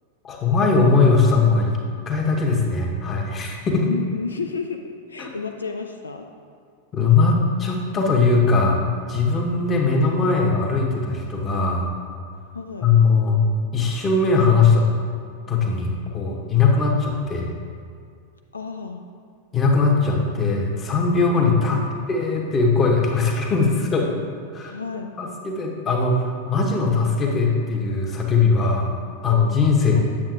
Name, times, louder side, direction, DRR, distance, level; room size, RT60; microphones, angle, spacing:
voice 1, 0.2-1.8 2.1-3.9 5.2-5.4 6.9-8.8 9.1-11.9 12.8-13.4 13.7-14.9 15.5-17.5 19.5-21.8 22.1-24.2 24.5-24.7 25.2-28.9 29.2-30.0, left 4 dB, 25° left, 0 dB, 1.0 m, -20 dB
voice 2, 3.8-6.3 12.5-12.9 18.5-19.0 21.6-21.9 24.6-25.1 29.9-30.0, left 4 dB, 75° left, 4 dB, 0.3 m, -31 dB
8.6 x 7.3 x 2.4 m, 2.3 s
figure-of-eight pair, 90°, 0 cm